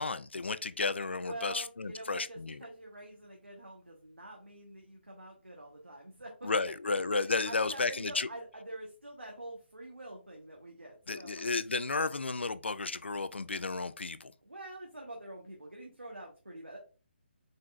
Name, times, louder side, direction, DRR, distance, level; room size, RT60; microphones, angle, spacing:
voice 1, 0.0-2.6 6.4-8.3 11.1-14.3, left 3 dB, 75° left, 0.4 m, -33 dB
voice 2, 1.2-11.4 11.7-12.1 14.4-16.8, right 1 dB, 85° right, 1.1 m, -46 dB
4.3 x 3.8 x 2.4 m
figure-of-eight pair, 145°, 6 cm